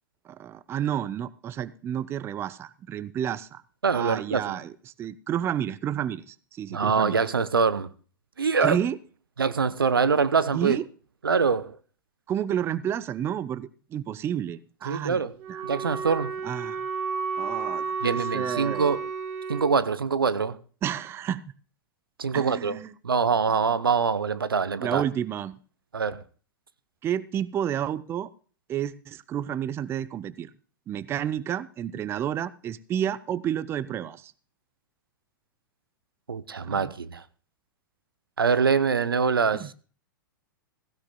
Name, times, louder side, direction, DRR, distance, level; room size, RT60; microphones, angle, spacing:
voice 1, 0.3-3.6 3.9-4.7 5.0-7.2 8.6-9.0 10.5-10.9 12.3-15.2 15.5-15.6 16.4-16.9 17.4-19.0 20.8-21.4 22.3-22.9 24.8-25.6 27.0-28.3 28.7-30.5 30.9-34.3 36.6-36.9 39.5-39.7, right 10 dB, 20° right, 0.4 m, -30 dB
voice 2, 3.8-4.6 6.7-7.9 8.4-8.8 9.4-10.8 11.2-11.8 14.9-15.3 15.6-16.3 18.0-19.0 19.5-20.6 22.2-22.8 23.0-25.0 25.9-26.2 36.3-37.2 38.4-39.7, right 5 dB, 85° right, 0.7 m, -24 dB
Wind instrument woodwind instrument, 15.4-19.7, right 5 dB, 45° right, 1.5 m, -32 dB
16.0 x 16.0 x 2.2 m
figure-of-eight pair, 105°, 12 cm